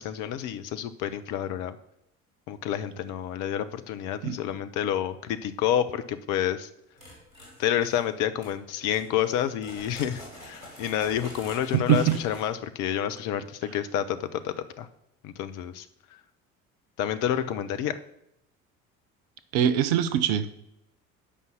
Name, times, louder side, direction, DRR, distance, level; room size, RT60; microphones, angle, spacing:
voice 1, 0.0-1.8 2.5-6.7 7.6-14.9 15.2-15.9 17.0-18.0, left 10 dB, 50° left, 11 dB, 0.8 m, -29 dB
sound 1, 7.0-8.1 8.4-8.5 8.9-12.4, left 1 dB, 90° right, 2.8 m, -46 dB
voice 2, 11.7-12.2 19.5-20.5, right 10 dB, 55° right, 12 dB, 0.9 m, -23 dB
8.4 x 5.5 x 7.2 m, 0.79 s
figure-of-eight pair, 60°, 40 cm